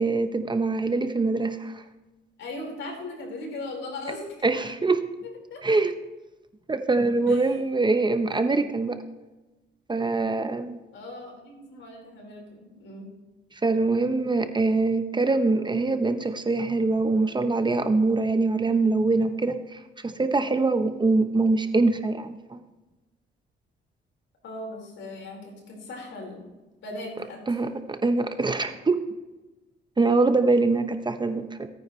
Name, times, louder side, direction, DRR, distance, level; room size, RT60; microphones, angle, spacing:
voice 1, 0.0-1.8 4.4-5.0 5.6-5.9 6.7-9.0 9.9-10.8 13.6-22.6 27.5-29.0 30.0-31.7, right 3 dB, 20° right, 8 dB, 0.8 m, -24 dB
voice 2, 2.4-4.2 5.5-5.6 7.3-7.6 10.9-13.1 24.4-26.4 26.8-27.6, left 2 dB, 70° left, -1 dB, 4.7 m, -38 dB
17.0 x 9.4 x 3.2 m, 1.1 s
cardioid pair, 90°, 20 cm